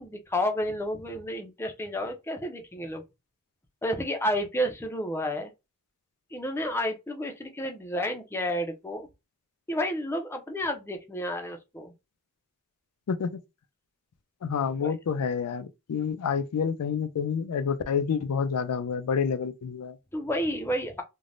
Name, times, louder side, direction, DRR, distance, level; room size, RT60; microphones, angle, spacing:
voice 1, 0.0-3.0 3.8-5.5 6.3-9.1 9.7-11.9 14.8-14.9 20.1-21.0, equal, 10° left, 0.5 m, -31 dB
voice 2, 13.1-13.4 14.4-20.0, left 6 dB, 90° left, 0.4 m, -28 dB
3.2 x 2.1 x 2.5 m
head